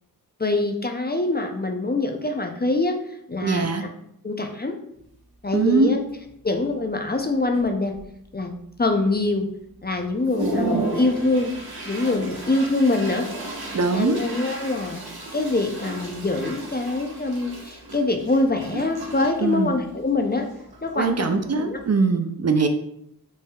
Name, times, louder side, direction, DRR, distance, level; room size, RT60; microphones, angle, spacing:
voice 1, 0.4-3.0 3.3-3.9 4.2-4.8 5.4-6.0 6.4-7.9 8.3-8.5 8.8-9.5 9.8-11.5 11.9-13.3 13.9-15.0 15.3-20.5 20.8-21.8, left 2 dB, 25° left, 4 dB, 0.4 m, -24 dB
voice 2, 3.4-3.8 5.5-6.0 13.7-14.2 19.4-19.7 21.0-22.7, right 4 dB, 45° right, 7 dB, 0.4 m, -21 dB
Toilet flush, 5.0-5.1 5.6-5.8 6.1-6.7 7.2-7.3 7.5-8.3 8.8-8.9 9.4-9.5 9.9-21.9, right 2 dB, 85° right, 1.1 m, -33 dB
5.3 x 3.3 x 2.3 m, 0.74 s
wide cardioid pair, 70°, 37 cm